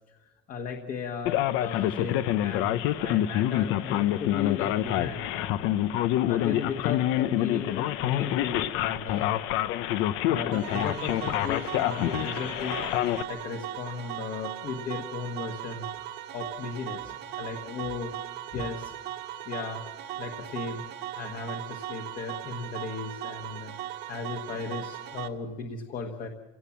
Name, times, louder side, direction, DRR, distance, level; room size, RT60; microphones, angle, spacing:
voice 1, 0.5-5.8 6.3-9.4 10.2-12.8 13.3-15.8 16.3-18.1 18.5-18.9 19.5-19.8 20.2-20.8 21.1-23.7 24.1-26.3, left 5 dB, 45° left, 3 dB, 1.5 m, -36 dB
Male speech man speaking, 1.3-13.2, left 13 dB, 85° left, 0.9 m, -27 dB
sound 1, 10.5-25.3, right 12 dB, 60° right, 1.7 m, -38 dB
28.5 x 17.5 x 7.4 m, 1.1 s
cardioid pair, 170°, 20 cm